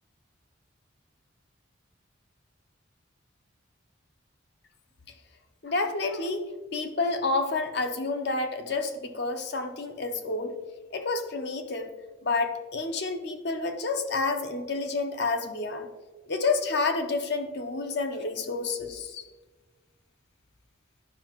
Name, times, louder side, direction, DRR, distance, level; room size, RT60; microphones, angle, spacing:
voice 1, 5.6-6.4 6.7-10.5 10.9-11.9 12.2-15.9 16.3-19.2, left 3 dB, 55° left, 6 dB, 0.7 m, -29 dB
11.0 x 5.6 x 3.0 m, 1.3 s
head